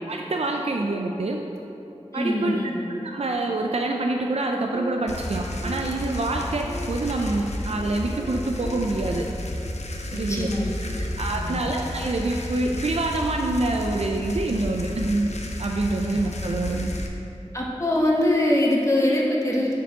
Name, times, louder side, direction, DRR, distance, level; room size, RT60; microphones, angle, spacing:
voice 1, 0.1-1.4 2.1-2.6 3.0-9.3 10.1-10.5 11.0-15.3 15.6-16.9, right 2 dB, 60° right, 1 dB, 0.4 m, -26 dB
sound 1, 0.9-2.1 2.6-9.2, equal, 5° right, 0.9 m, -41 dB
voice 2, 2.1-2.7 10.1-11.1 11.3-11.6 17.5-19.7, left 1 dB, 25° left, -4 dB, 1.4 m, -23 dB
sound 2, 5.1-17.1, left 1 dB, 70° left, 0.7 m, -32 dB
9.9 x 4.7 x 3.7 m, 2.9 s
wide cardioid pair, 45°, 12 cm